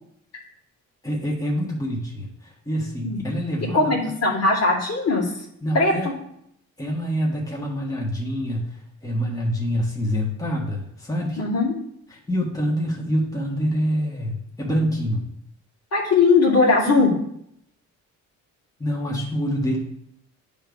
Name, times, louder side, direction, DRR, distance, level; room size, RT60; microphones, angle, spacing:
voice 1, 1.0-3.9 5.6-6.1 6.8-11.4 12.1-15.3 18.8-19.8, equal, 10° left, -2 dB, 1.6 m, -26 dB
voice 2, 3.6-5.3 5.7-6.1 11.4-11.7 15.9-17.1, left 3 dB, 55° left, -3 dB, 2.2 m, -19 dB
8.7 x 3.6 x 5.2 m, 0.72 s
cardioid pair, 90°, 30 cm